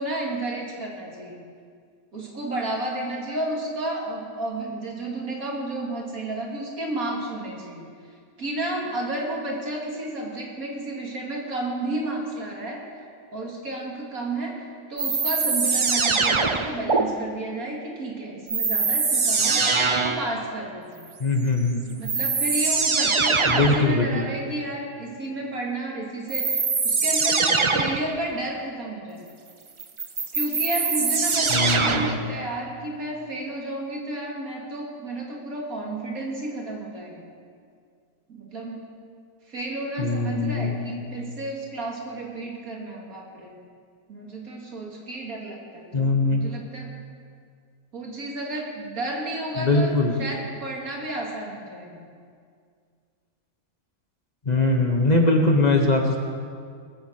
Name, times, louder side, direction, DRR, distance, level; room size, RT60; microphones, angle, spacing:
voice 1, 0.0-1.4 2.1-7.8 8.4-12.9 13.3-14.6 14.9-21.1 22.0-29.2 30.3-37.2 38.3-38.8 39.5-43.6 44.1-46.9 47.9-52.0, right 1 dB, 80° right, -1 dB, 2.7 m, -32 dB
sound 1, 15.0-17.0 18.5-20.3 21.6-21.7 22.0-23.9 26.3-28.1 29.8-32.2, right 4 dB, 40° right, 0.4 m, -23 dB
voice 2, 21.2-21.9 23.5-24.2 31.5-32.1 40.0-40.8 45.9-46.5 49.6-50.1 54.5-56.2, left 2 dB, 30° left, 2 dB, 1.2 m, -21 dB
19.0 x 7.2 x 7.6 m, 2.2 s
omnidirectional pair, 1.5 m